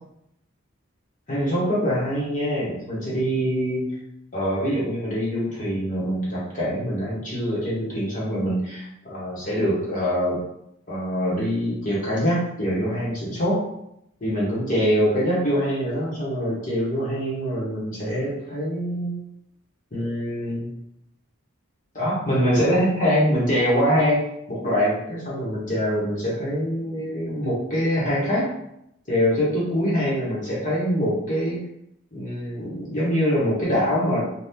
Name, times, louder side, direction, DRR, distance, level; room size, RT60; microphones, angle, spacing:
voice 1, 1.3-3.9 4.3-10.4 10.9-13.6 14.2-19.1 19.9-20.7 21.9-24.2 24.5-28.5 29.1-31.6 32.1-34.3, equal, 35° left, -7 dB, 1.0 m, -24 dB
2.8 x 2.3 x 3.5 m, 0.79 s
head